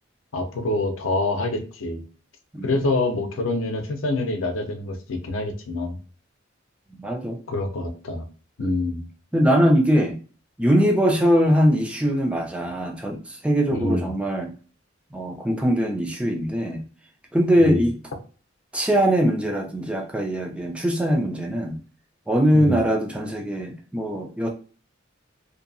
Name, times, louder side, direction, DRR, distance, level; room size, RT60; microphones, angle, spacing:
voice 1, 0.3-2.0 2.6-6.0 7.5-8.2 8.6-9.1 13.7-14.1 17.6-17.9 22.5-22.8, left 2 dB, 75° left, 0.6 m, -26 dB
voice 2, 2.5-2.8 7.0-7.4 8.6-8.9 9.3-10.2 10.6-14.5 15.1-16.9 17.3-18.0 18.7-21.8 22.3-24.5, equal, 5° right, 0.3 m, -21 dB
2.6 x 2.2 x 2.5 m
head